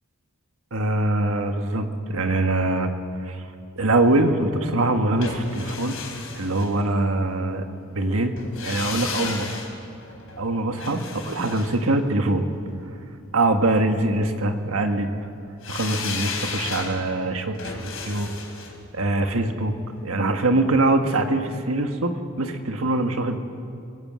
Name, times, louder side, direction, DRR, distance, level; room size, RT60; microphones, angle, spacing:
voice 1, 0.7-2.9 3.3-3.4 3.8-6.0 6.3-7.6 7.9-8.3 8.6-9.5 10.4-12.5 13.3-15.1 15.7-18.3 18.9-19.8 20.0-23.4, right 2 dB, 85° right, 6 dB, 1.6 m, -23 dB
sound 1, 5.2-7.3 8.4-12.6 15.6-20.6 20.9-21.0, left 5 dB, 80° left, 3.9 m, -35 dB
25.0 x 17.0 x 7.7 m, 2.6 s
head